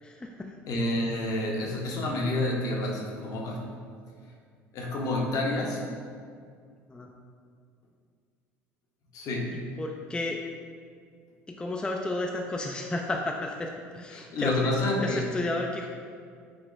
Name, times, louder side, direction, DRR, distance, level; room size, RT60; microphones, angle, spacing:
voice 1, 0.0-0.6 6.9-7.1 9.8-10.4 11.5-14.7 15.0-15.9, left 2 dB, 10° left, 1 dB, 0.3 m, -32 dB
voice 2, 0.7-3.7 4.7-5.8 9.1-9.6 14.1-15.2, left 1 dB, 55° left, -1 dB, 0.8 m, -29 dB
5.0 x 2.9 x 2.5 m, 2.1 s
hypercardioid pair, 70°, 7 cm